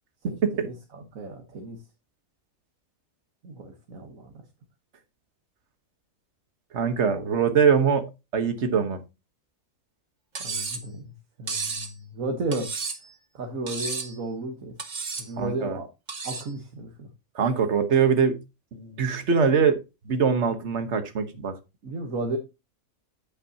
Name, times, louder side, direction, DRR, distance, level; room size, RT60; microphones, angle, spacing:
voice 1, 0.2-1.8 3.4-4.3 7.1-7.3 10.4-11.1 11.4-12.7 13.3-14.8 15.2-15.9 16.2-17.1 21.8-22.4, right 2 dB, 70° right, 3 dB, 1.7 m, -34 dB
voice 2, 6.7-9.0 15.4-15.8 17.3-18.4 18.7-21.6, right 6 dB, 55° right, 8 dB, 1.5 m, -23 dB
Cutlery silverware, 10.3-10.9 11.5-11.9 12.5-13.1 13.7-14.2 14.8-15.3 16.1-16.5, right 4 dB, 35° right, 1.1 m, -32 dB
8.8 x 8.3 x 2.8 m, 0.26 s
omnidirectional pair, 1.5 m